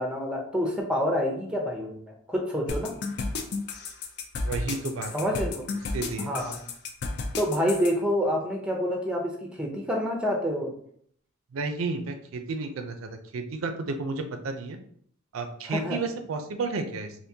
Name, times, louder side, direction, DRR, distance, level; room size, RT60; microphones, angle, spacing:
voice 1, 0.0-2.9 5.1-5.6 6.2-6.6 7.4-10.8 15.7-16.0, equal, 5° right, 1 dB, 0.5 m, -28 dB
sound 1, 2.7-7.9, left 3 dB, 55° left, 0.4 m, -32 dB
voice 2, 4.4-5.1 5.9-6.3 11.5-14.8 15.3-17.2, right 3 dB, 80° right, 7 dB, 0.4 m, -32 dB
3.6 x 2.5 x 2.7 m, 0.63 s
head